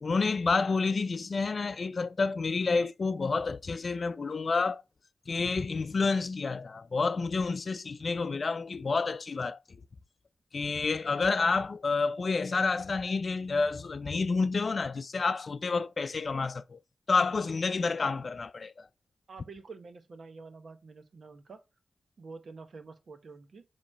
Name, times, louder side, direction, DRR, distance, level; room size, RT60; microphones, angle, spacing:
voice 1, 0.0-4.8 5.3-9.8 10.5-16.8 17.1-18.9, left 4 dB, 60° left, 0.4 m, -29 dB
voice 2, 19.3-21.6 22.2-23.6, right 4 dB, 75° right, 1.0 m, -48 dB
7.1 x 3.1 x 4.3 m
cardioid pair, 60°, 0 cm